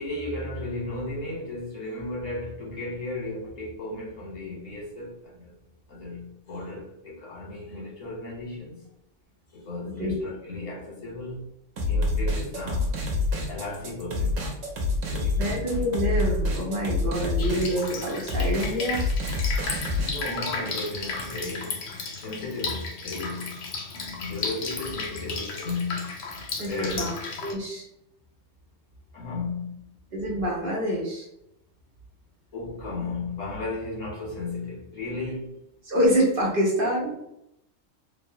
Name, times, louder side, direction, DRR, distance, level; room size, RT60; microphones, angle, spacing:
voice 1, 0.0-5.5 5.9-8.8 9.5-11.5 11.8-13.0 13.5-14.5 15.1-15.7 20.0-21.9 22.2-23.5 23.9-26.1 26.7-27.1 29.1-29.7 32.5-35.7, left 2 dB, 85° left, 1.5 m, -34 dB
sound 1, 11.8-20.1, left 2 dB, 75° right, 1.1 m, -27 dB
voice 2, 15.0-19.0 26.6-27.1 27.4-27.9 30.1-31.3 35.8-37.2, equal, 55° right, 0.7 m, -26 dB
Drip, 17.4-27.5, left 4 dB, 60° left, 0.6 m, -34 dB
3.0 x 2.2 x 2.7 m
omnidirectional pair, 1.3 m